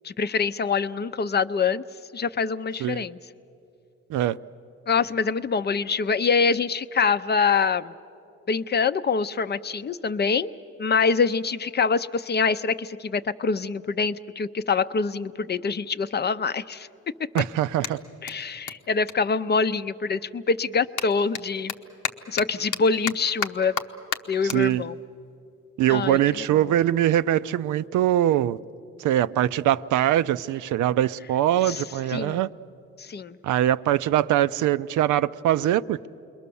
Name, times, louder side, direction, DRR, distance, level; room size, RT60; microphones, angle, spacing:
voice 1, 0.0-1.8 2.1-3.2 4.9-7.9 8.5-10.5 10.8-16.9 18.2-21.7 22.3-23.8 24.3-25.0 25.9-26.7 31.6-31.8 32.1-32.4 33.0-33.4, left 5 dB, 35° left, 0.6 m, -25 dB
Clapping, 15.2-15.3 16.0-20.1 20.4-27.0, left 9 dB, 85° left, 1.0 m, -36 dB
voice 2, 17.3-18.0 24.5-24.8 25.8-28.6 29.0-32.5 33.4-36.1, right 12 dB, 80° right, 0.5 m, -22 dB
28.5 x 22.0 x 7.0 m
cardioid pair, 90°, 30 cm